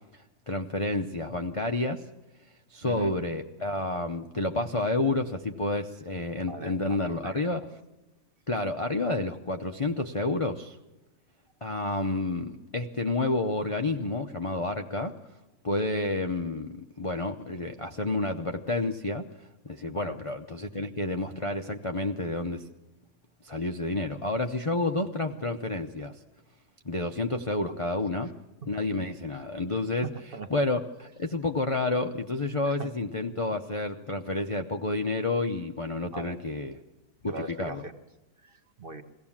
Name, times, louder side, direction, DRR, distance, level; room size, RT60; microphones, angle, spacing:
voice 1, 0.1-2.0 2.7-7.7 8.5-10.8 11.6-15.1 15.6-19.3 19.6-22.6 23.4-26.2 26.8-28.3 28.7-30.1 30.5-36.8 37.2-37.8, left 2 dB, 55° left, 5 dB, 0.3 m, -30 dB
voice 2, 2.8-3.1 6.5-7.5 19.8-20.2 29.3-29.4 30.0-30.5 32.6-32.9 36.1-36.4 37.3-38.0 38.4-39.0, right 3 dB, 40° right, 7 dB, 1.0 m, -41 dB
22.5 x 16.0 x 7.3 m, 1.1 s
omnidirectional pair, 1.8 m